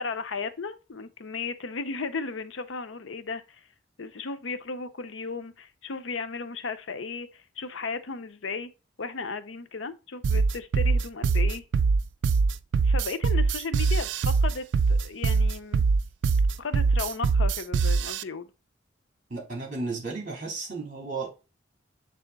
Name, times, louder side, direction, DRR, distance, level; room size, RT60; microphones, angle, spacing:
voice 1, 0.0-3.6 4.0-8.7 9.0-11.6 12.8-15.8 16.6-18.5, left 4 dB, 90° left, 0.7 m, -35 dB
sound 1, 10.2-18.2, right 4 dB, 70° right, 0.3 m, -23 dB
voice 2, 19.3-21.3, right 3 dB, 45° right, 3.1 m, -33 dB
7.5 x 3.5 x 4.0 m
head